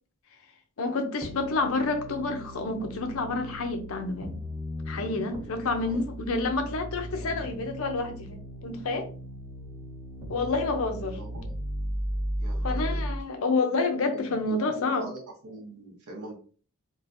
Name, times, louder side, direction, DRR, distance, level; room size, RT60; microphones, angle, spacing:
voice 1, 0.8-4.3 4.9-9.1 10.3-11.2 12.6-15.1, left 3 dB, 65° left, 6 dB, 0.6 m, -29 dB
sound 1, 1.2-13.2, equal, 15° right, 1.5 m, -36 dB
voice 2, 11.0-11.6 12.4-13.1 14.1-16.4, right 2 dB, 85° right, -2 dB, 0.8 m, -43 dB
3.1 x 2.4 x 2.5 m, 0.40 s
head